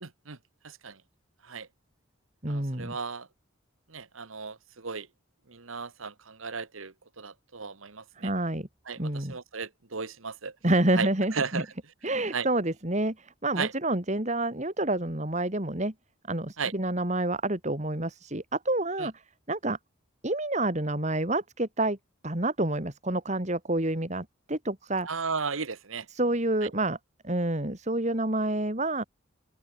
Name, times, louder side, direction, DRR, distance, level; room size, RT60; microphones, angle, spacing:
voice 1, 0.0-0.4 0.6-1.0 1.4-1.7 2.5-3.3 3.9-5.1 5.5-8.3 8.9-10.5 11.0-11.7 12.3-12.5 13.6-13.7 16.6-16.7 19.0-19.1 25.0-26.1 26.6-26.7, right 5 dB, 85° right, 1.6 m, -35 dB
voice 2, 2.4-3.0 8.2-8.7 9.0-9.4 10.6-11.6 12.0-15.9 16.3-19.1 19.5-19.8 20.2-22.0 22.2-25.1 26.1-27.0 27.2-29.0, right 1 dB, 35° right, 2.5 m, -28 dB
open air
head